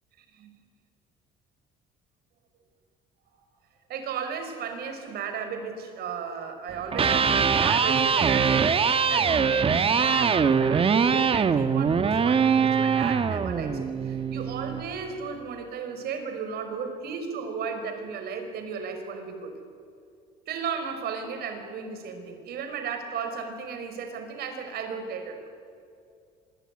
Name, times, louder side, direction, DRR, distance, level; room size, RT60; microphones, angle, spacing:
voice 1, 3.9-19.5 20.5-25.5, right 6 dB, 70° right, 6 dB, 5.3 m, -35 dB
Electric guitar, 6.8-14.9, right 6 dB, 35° right, 1.2 m, -23 dB
25.5 x 22.0 x 9.8 m, 2.4 s
cardioid pair, 110°, 17 cm